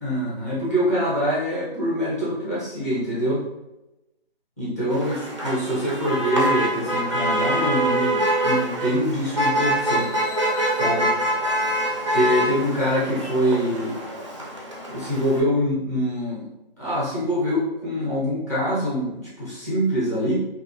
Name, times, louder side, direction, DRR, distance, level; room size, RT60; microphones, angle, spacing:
voice 1, 0.0-3.4 4.6-10.1 10.7-11.1 12.1-14.0 14.9-16.5 16.8-20.4, equal, 15° left, -8 dB, 0.7 m, -24 dB
Motor vehicle (road), 4.9-15.4, right 1 dB, 30° right, 0.4 m, -25 dB
2.8 x 2.3 x 2.8 m, 0.96 s
figure-of-eight pair, 155°, 31 cm